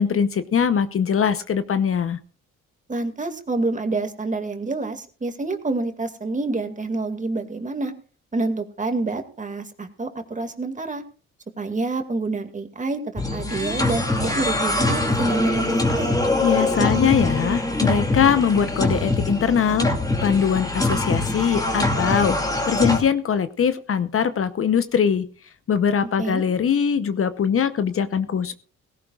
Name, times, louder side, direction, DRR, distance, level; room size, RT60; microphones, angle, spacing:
voice 1, 0.0-2.2 16.4-19.9 20.2-22.4 22.6-25.3 25.7-28.5, left 7 dB, 45° left, 11 dB, 0.9 m, -21 dB
voice 2, 2.9-7.9 8.3-11.0 11.6-16.1 26.0-26.4, right 3 dB, 25° right, 6 dB, 2.3 m, -27 dB
sound 1, 13.2-23.0, left 2 dB, 10° left, 2.6 m, -23 dB
18.0 x 16.5 x 2.5 m, 0.39 s
cardioid pair, 90°, 30 cm